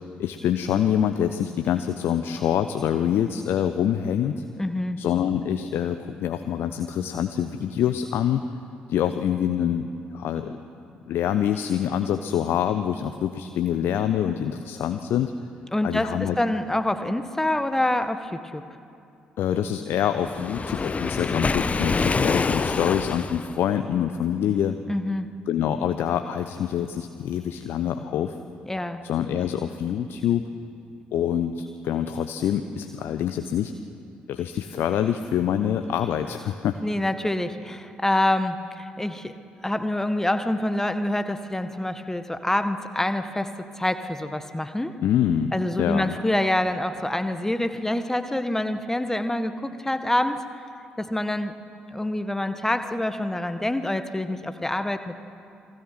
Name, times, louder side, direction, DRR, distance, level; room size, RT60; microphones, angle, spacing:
voice 1, 0.2-4.4 5.0-8.5 8.9-9.9 10.1-10.6 11.1-15.3 15.8-16.4 19.4-24.8 25.5-28.4 29.0-30.5 31.1-33.7 34.3-36.8 45.0-45.5 45.8-46.1, left 9 dB, 55° left, 8 dB, 0.9 m, -25 dB
voice 2, 4.6-5.0 15.7-18.6 24.9-25.3 28.6-29.0 36.8-39.4 39.6-45.0 45.5-50.4 51.0-51.6 51.9-55.2, left 1 dB, 10° left, 9 dB, 1.7 m, -26 dB
Waves surf, 20.2-23.6, left 4 dB, 30° left, 1.0 m, -25 dB
28.5 x 22.0 x 6.2 m, 2.6 s
figure-of-eight pair, 40°, 5 cm